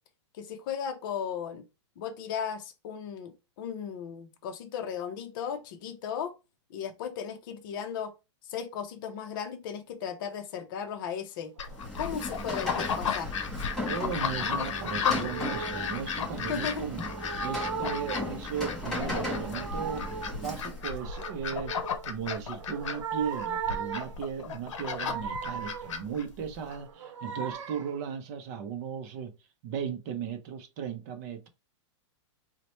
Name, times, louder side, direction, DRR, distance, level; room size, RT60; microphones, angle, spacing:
voice 1, 0.4-1.6 2.0-6.3 6.7-8.1 8.5-11.5 12.0-13.3 16.5-16.8, left 7 dB, 45° left, 0.6 m, -36 dB
sound 1, 11.6-26.8, left 6 dB, 80° left, 0.7 m, -34 dB
sound 2, 11.6-11.9 13.2-13.5 14.1-16.0 16.6-18.4 18.9-20.4 20.9-22.1 22.5-24.2 24.7-26.1 26.6-28.0, right 6 dB, 75° right, 0.7 m, -38 dB
Rain, 11.7-21.0, left 1 dB, 5° left, 0.7 m, -37 dB
voice 2, 13.8-17.1 17.4-20.1 20.3-21.7 22.0-29.3 29.6-31.5, right 7 dB, 35° right, 0.6 m, -36 dB
4.0 x 2.1 x 3.0 m
supercardioid pair, 165°, 16 cm